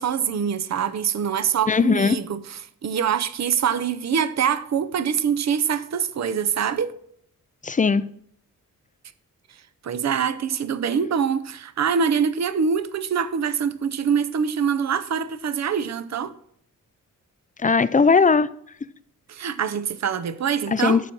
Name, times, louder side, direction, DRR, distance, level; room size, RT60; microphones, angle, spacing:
voice 1, 0.0-6.9 9.5-16.3 19.3-21.0, right 7 dB, 55° right, 0.7 m, -24 dB
voice 2, 1.7-2.2 7.6-8.1 17.6-18.5 20.7-21.1, left 5 dB, 25° left, 0.5 m, -18 dB
12.5 x 4.6 x 5.3 m
cardioid pair, 70°, 34 cm